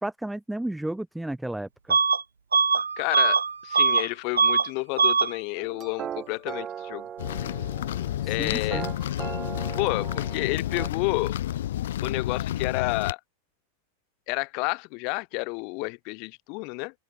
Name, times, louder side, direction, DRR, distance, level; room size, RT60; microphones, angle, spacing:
voice 1, 0.0-2.0 8.2-8.9, right 1 dB, 5° right, 2.1 m, -33 dB
Bus / Alarm, 1.9-2.2 2.5-4.1 4.3-4.7 5.0-5.3, right 5 dB, 75° right, 0.4 m, -21 dB
voice 2, 3.0-7.1 8.2-8.8 9.8-11.4 12.0-13.2 14.3-16.9, left 33 dB, 45° left, 7.6 m, -30 dB
sound 1, 5.6-10.9, right 9 dB, 25° right, 2.6 m, -38 dB
sound 2, 7.2-13.1, left 12 dB, 60° left, 5.9 m, -30 dB
figure-of-eight pair, 90°, 0 cm